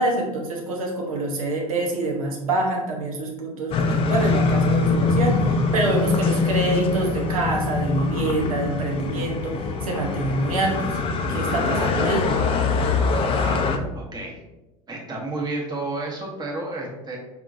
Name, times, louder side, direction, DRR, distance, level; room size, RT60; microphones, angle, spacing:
voice 1, 0.0-11.0 11.3-12.3, right 2 dB, 70° right, 0 dB, 1.0 m, -26 dB
sound 1, 3.7-13.8, left 4 dB, 30° left, 0.5 m, -23 dB
voice 2, 11.6-11.9 13.3-13.6 13.9-14.3 14.9-17.2, right 2 dB, 20° right, -2 dB, 1.4 m, -31 dB
4.8 x 3.6 x 2.6 m, 1.0 s
figure-of-eight pair, 75°, 18 cm